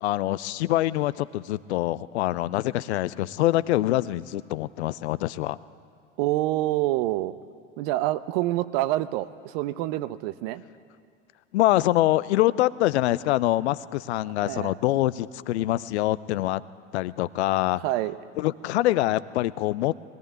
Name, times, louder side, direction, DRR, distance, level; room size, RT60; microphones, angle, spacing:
voice 1, 0.0-5.6 11.5-16.6 16.9-17.8 18.4-19.9, left 15 dB, 60° left, 17 dB, 0.7 m, -25 dB
voice 2, 6.2-7.3 7.8-10.6 14.4-14.8 17.8-18.1, right 16 dB, 50° right, 14 dB, 0.9 m, -27 dB
20.5 x 18.0 x 9.5 m, 2.4 s
figure-of-eight pair, 75°, 38 cm